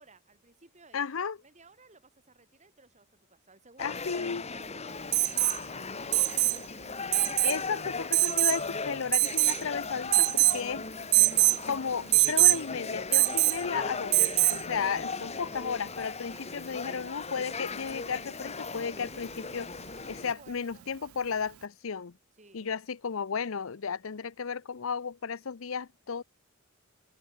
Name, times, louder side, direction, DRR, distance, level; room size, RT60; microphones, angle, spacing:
voice 1, 0.0-7.2 20.4-20.8 22.4-22.8, right 3 dB, 35° right, 4.7 m, -58 dB
voice 2, 0.9-1.4 3.8-4.4 7.4-10.9 11.7-19.7 20.1-22.1 22.5-26.2, left 6 dB, 75° left, 0.7 m, -34 dB
sound 1, 3.8-20.3, left 4 dB, 30° left, 1.5 m, -38 dB
Alarm, 5.1-5.6 6.1-6.6 7.1-7.6 8.1-8.6 9.1-9.6 10.1-10.6 11.1-11.6 12.1-12.6 13.1-13.6 14.1-14.6 16.4-16.5, right 22 dB, 85° right, 0.4 m, -23 dB
head